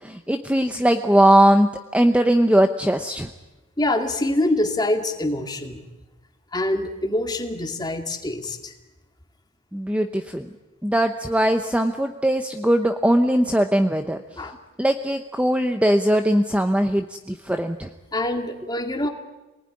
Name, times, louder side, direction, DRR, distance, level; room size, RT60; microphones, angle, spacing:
voice 1, 0.0-3.3 9.7-10.5 10.8-14.5 14.8-17.9, right 1 dB, 5° right, 7 dB, 0.8 m, -20 dB
voice 2, 3.8-5.8 6.5-8.7 14.4-14.6 18.1-19.1, left 1 dB, 20° left, 5 dB, 2.1 m, -25 dB
27.5 x 19.5 x 9.8 m, 1.1 s
head